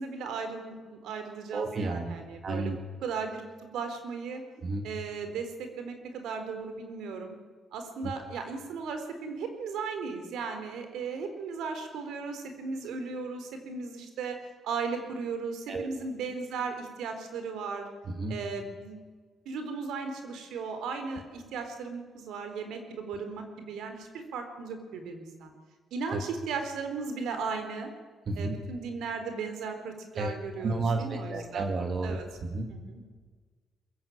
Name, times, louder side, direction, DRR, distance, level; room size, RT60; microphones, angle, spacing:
voice 1, 0.0-3.4 3.7-4.4 4.8-7.4 7.7-14.4 14.6-17.9 18.3-19.0 19.5-25.5 25.9-27.9 28.4-31.7 32.0-32.2 32.7-33.0, right 5 dB, 80° right, 7 dB, 4.0 m, -36 dB
voice 2, 1.5-2.2 2.4-2.8 4.6-4.9 15.7-15.9 18.1-18.4 26.1-26.2 28.3-28.5 30.2-32.7, right 3 dB, 45° right, 5 dB, 2.4 m, -32 dB
22.5 x 15.5 x 8.9 m, 1.5 s
cardioid pair, 90°, 0 cm